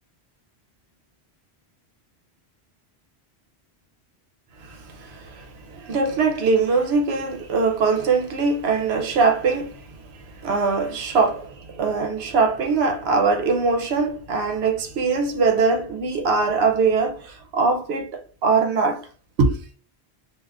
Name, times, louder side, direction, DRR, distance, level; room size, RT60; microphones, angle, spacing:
voice 1, 4.6-19.0 19.4-19.6, right 4 dB, 75° right, 0.9 m, -22 dB
2.4 x 2.4 x 3.3 m
omnidirectional pair, 1.1 m